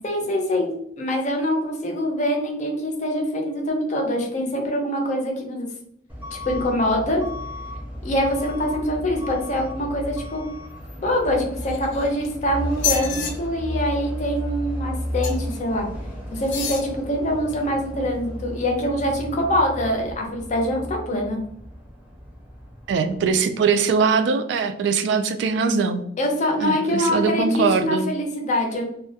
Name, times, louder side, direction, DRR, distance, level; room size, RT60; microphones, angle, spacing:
voice 1, 0.0-5.7 6.3-7.2 8.0-10.5 10.9-15.9 16.3-21.4 26.2-28.8, equal, 40° left, 1 dB, 0.5 m, -24 dB
Truck / Alarm, 6.1-23.3, equal, 10° right, 0.5 m, -34 dB
sound 1, 11.6-12.3 12.7-13.3 15.2-15.6 16.4-16.9 17.5-17.6, left 7 dB, 90° left, 0.5 m, -28 dB
voice 2, 22.9-26.0 26.6-28.1, right 5 dB, 70° right, 9 dB, 0.3 m, -21 dB
2.2 x 2.1 x 2.7 m, 0.72 s
head